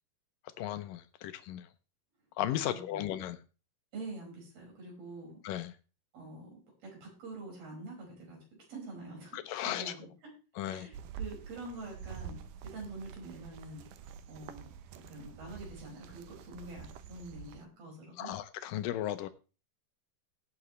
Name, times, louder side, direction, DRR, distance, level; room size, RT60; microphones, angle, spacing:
voice 1, 0.6-1.7 2.4-3.4 5.4-5.7 9.3-9.9 10.6-10.9 18.2-19.3, left 12 dB, 80° left, 2.0 m, -35 dB
voice 2, 2.5-3.0 3.9-5.4 6.1-8.4 8.7-10.3 10.6-12.4 12.6-14.7 15.1-18.3, right 2 dB, 65° right, 7.3 m, -46 dB
sound 1, 10.9-17.7, right 7 dB, 80° right, 1.9 m, -47 dB
17.5 x 8.5 x 3.2 m
omnidirectional pair, 4.6 m